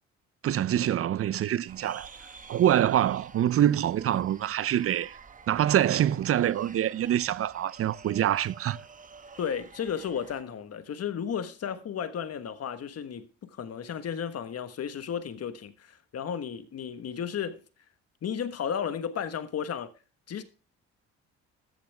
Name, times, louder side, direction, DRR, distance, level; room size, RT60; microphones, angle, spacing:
voice 1, 0.4-2.1 2.5-5.2 5.5-8.8, right 11 dB, 50° right, 0.5 m, -25 dB
sound 1, 1.7-10.4, right 5 dB, 25° right, 0.9 m, -50 dB
voice 2, 9.4-17.6 18.2-19.9 20.3-20.4, left 8 dB, 55° left, 1.3 m, -33 dB
14.0 x 6.9 x 3.4 m
cardioid pair, 90°, 30 cm